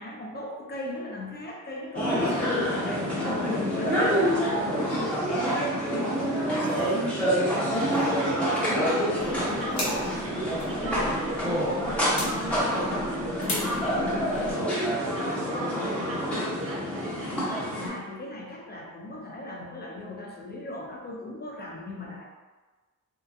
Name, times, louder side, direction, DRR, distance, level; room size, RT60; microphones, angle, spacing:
voice 1, 0.0-4.2 6.0-6.4 15.2-15.5 15.8-16.2 17.8-22.2, left 1 dB, 35° left, -1 dB, 0.5 m, -38 dB
sound 1, 1.9-17.9, equal, 5° left, 0.9 m, -27 dB
sound 2, 4.8-10.2, left 1 dB, 85° left, 0.6 m, -42 dB
voice 2, 4.9-17.7, right 1 dB, 45° right, -4 dB, 0.7 m, -39 dB
sound 3, 9.2-14.5, left 1 dB, 65° left, 1.0 m, -38 dB
2.7 x 2.1 x 2.4 m, 1.3 s
cardioid pair, 100°, 31 cm